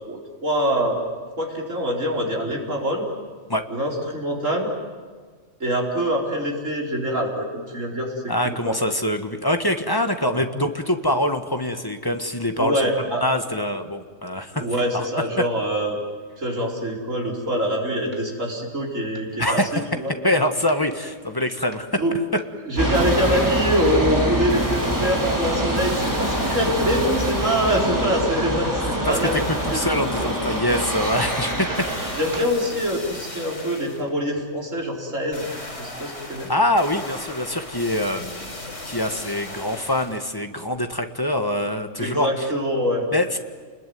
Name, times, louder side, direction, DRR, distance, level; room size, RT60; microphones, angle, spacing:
voice 1, 0.1-1.0 1.4-3.0 3.7-4.7 5.6-8.8 10.2-10.4 12.6-13.2 14.5-16.0 16.4-19.6 19.9-20.1 22.0-22.1 22.7-29.5 29.7-29.8 30.2-30.3 32.2-35.5 35.8-36.5 42.0-43.1, equal, 85° right, -1 dB, 5.0 m, -24 dB
voice 2, 8.3-14.7 14.9-15.0 19.4-19.7 20.2-22.2 29.0-31.7 36.5-38.5 38.9-42.5 43.1-43.4, left 1 dB, 20° left, 7 dB, 1.5 m, -24 dB
sound 1, 18.1-18.2 18.7-18.8 19.2-19.3 19.7-20.2 20.7-21.3 21.7-21.8 22.2-23.0 23.5-23.6 23.8-24.5 24.8-25.8 26.1-26.7 28.7-28.8 29.0-29.9 30.2-30.5 30.8-31.3 31.7-32.1 32.3-32.6 33.3-33.4 34.3-34.4, right 2 dB, 40° right, 2.4 m, -41 dB
sound 2, 22.8-24.1 24.5-28.1 29.1-34.1 35.3-40.3 40.8-40.9, left 2 dB, 75° left, 4.6 m, -37 dB
sound 3, 22.8-32.4, equal, 15° right, 4.1 m, -25 dB
30.0 x 21.0 x 9.5 m, 1.5 s
omnidirectional pair, 1.3 m